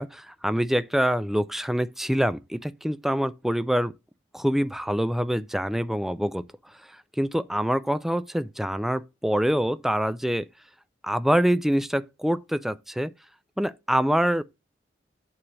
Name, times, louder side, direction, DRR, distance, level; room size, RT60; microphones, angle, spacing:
voice 1, 0.0-3.9 4.3-6.4 6.9-10.5 11.0-13.1 13.6-14.4, equal, ahead, 0.3 m, -25 dB
8.6 x 3.2 x 6.1 m
head